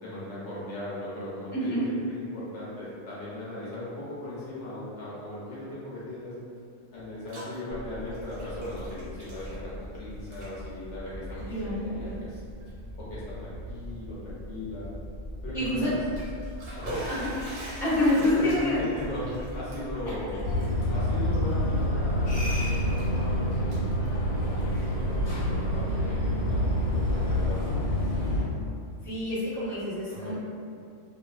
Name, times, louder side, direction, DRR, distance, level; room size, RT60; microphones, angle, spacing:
voice 1, 0.0-6.3 6.9-12.4 12.9-14.9 15.4-16.0 16.8-17.0 18.2-20.4 20.9-27.7 30.1-30.3, left 1 dB, 65° left, -9 dB, 0.9 m, -38 dB
Bathtub (filling or washing), 7.0-7.6 7.9-10.0 10.2-10.5 11.3-11.4 12.1-12.2 12.6-12.7 15.9-22.0 22.4-23.2 23.5-24.8, right 1 dB, 60° right, 0.7 m, -43 dB
sound 1, 7.7-25.7, equal, 35° left, 0.3 m, -41 dB
voice 2, 11.5-12.2 15.5-15.9 17.1-17.3 17.8-18.8 20.0-20.1 29.0-30.3, left 1 dB, ahead, -12 dB, 0.8 m, -27 dB
sound 2, 20.4-28.4, left 1 dB, 85° left, 1.2 m, -27 dB
2.6 x 2.3 x 2.3 m, 2.4 s
omnidirectional pair, 1.4 m